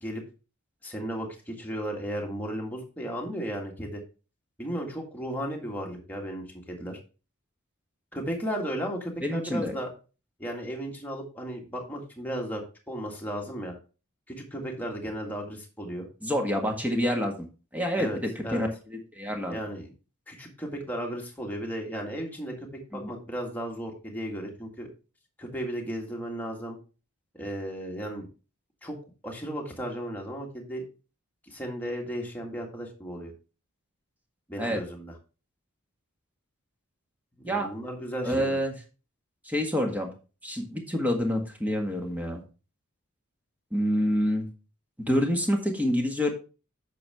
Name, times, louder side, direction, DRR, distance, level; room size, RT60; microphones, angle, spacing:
voice 1, 0.8-4.0 4.6-7.0 8.1-9.9 10.4-12.6 12.9-13.8 14.3-16.1 18.0-18.2 18.4-18.7 19.5-19.9 20.3-22.7 22.9-24.9 25.4-26.8 27.3-28.3 28.8-29.0 29.2-30.8 31.5-33.3 34.5-35.1 37.4-38.6, equal, 10° left, 0 dB, 1.9 m, -35 dB
voice 2, 9.2-9.7 16.2-17.3 17.7-19.6 22.9-23.1 34.6-34.8 37.4-37.7 38.2-38.7 39.4-40.1 40.4-42.4 43.7-44.5 45.1-46.3, equal, 5° right, 2 dB, 1.6 m, -27 dB
8.6 x 6.5 x 3.5 m, 0.33 s
head